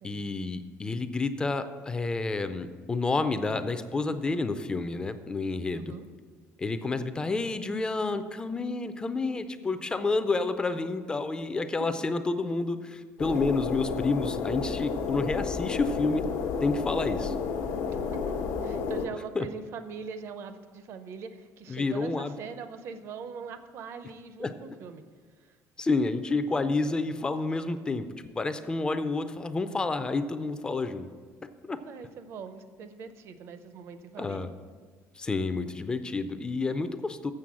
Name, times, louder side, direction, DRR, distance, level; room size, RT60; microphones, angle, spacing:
voice 1, 0.0-5.9 6.6-16.3 16.6-17.3 19.4-19.5 21.7-22.3 24.4-24.5 25.8-28.1 28.3-31.1 31.7-31.8 34.2-34.5 35.2-37.3, left 3 dB, 15° left, 10 dB, 0.4 m, -29 dB
voice 2, 5.8-6.1 11.8-12.1 17.9-18.3 18.6-25.0 25.4-25.6 31.8-34.5, right 5 dB, 50° right, 10 dB, 0.6 m, -42 dB
sound 1, 13.2-19.1, left 5 dB, 90° left, 1.0 m, -31 dB
7.6 x 6.6 x 7.2 m, 1.6 s
cardioid pair, 165°, 6 cm